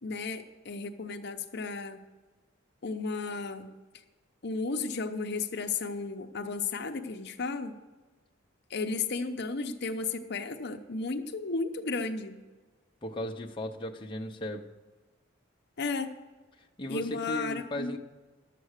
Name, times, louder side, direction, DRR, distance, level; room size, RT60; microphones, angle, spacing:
voice 1, 0.0-2.0 2.8-3.7 4.4-7.8 8.7-12.4 15.8-16.1 16.9-18.0, left 4 dB, 55° left, 6 dB, 0.7 m, -34 dB
voice 2, 13.0-14.7 16.8-18.0, equal, 25° left, 1 dB, 0.7 m, -36 dB
11.5 x 7.7 x 6.5 m, 1.3 s
head